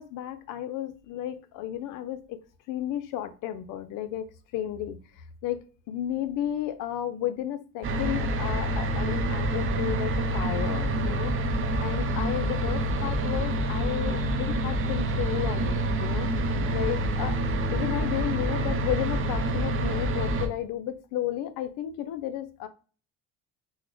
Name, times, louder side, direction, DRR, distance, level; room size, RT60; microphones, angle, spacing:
voice 1, 0.0-2.4 2.7-4.2 4.5-11.3 11.8-16.3 16.7-17.4 17.7-22.7, left 11 dB, 75° left, 11 dB, 0.5 m, -33 dB
sound 1, 7.8-20.5, right 1 dB, 40° right, 0.6 m, -27 dB
3.6 x 2.1 x 3.0 m, 0.38 s
cardioid pair, 90°, 32 cm